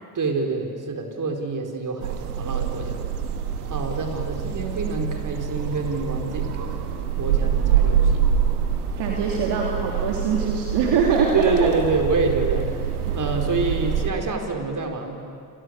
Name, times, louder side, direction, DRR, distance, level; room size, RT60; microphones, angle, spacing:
voice 1, 0.1-3.0 3.7-6.9 7.2-8.3 11.3-12.7 13.1-15.2, right 3 dB, 45° right, 4 dB, 4.7 m, -26 dB
sound 1, 2.0-14.1, right 8 dB, 85° right, 1.8 m, -25 dB
voice 2, 8.9-11.3 11.6-11.7, right 6 dB, 65° right, -1 dB, 3.2 m, -23 dB
29.5 x 29.0 x 6.7 m, 2.5 s
figure-of-eight pair, 45°, 44 cm